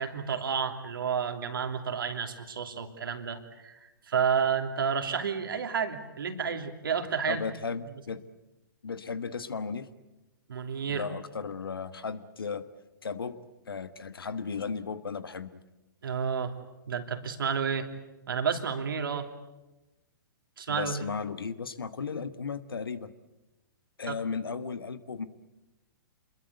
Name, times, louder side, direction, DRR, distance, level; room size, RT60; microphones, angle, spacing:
voice 1, 0.0-7.4 10.5-11.1 16.0-16.5 16.9-17.9 18.3-19.3 20.6-21.1 24.1-24.2, right 6 dB, 70° right, 6 dB, 3.0 m, -30 dB
voice 2, 7.3-8.2 8.8-9.9 10.9-12.7 13.0-13.4 13.7-15.6 20.7-23.1 24.0-25.3, left 5 dB, 80° left, 13 dB, 1.5 m, -35 dB
27.5 x 22.0 x 8.2 m, 1.1 s
hypercardioid pair, 120°, 12 cm